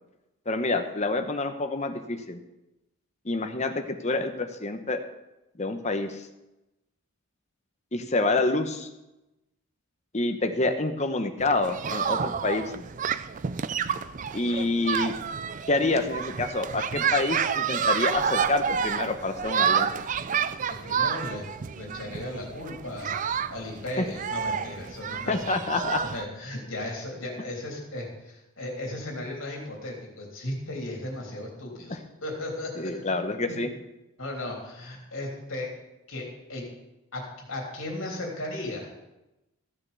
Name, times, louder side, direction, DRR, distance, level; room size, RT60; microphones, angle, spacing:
voice 1, 0.5-2.4 3.2-5.0 5.6-6.3 7.9-8.9 10.1-12.8 14.3-15.1 15.7-19.9 24.0-24.1 25.3-26.0 31.9-32.0 32.8-33.7, left 2 dB, 30° left, 7 dB, 0.9 m, -27 dB
sound 1, 11.4-26.2, right 7 dB, 35° right, 0.3 m, -29 dB
voice 2, 20.7-21.5 21.8-23.2 23.5-25.4 26.0-32.9 33.5-33.6 34.2-35.7 36.1-36.7 37.1-37.2 37.5-38.9, left 1 dB, 65° left, -1 dB, 3.3 m, -36 dB
14.5 x 6.7 x 6.9 m, 0.97 s
head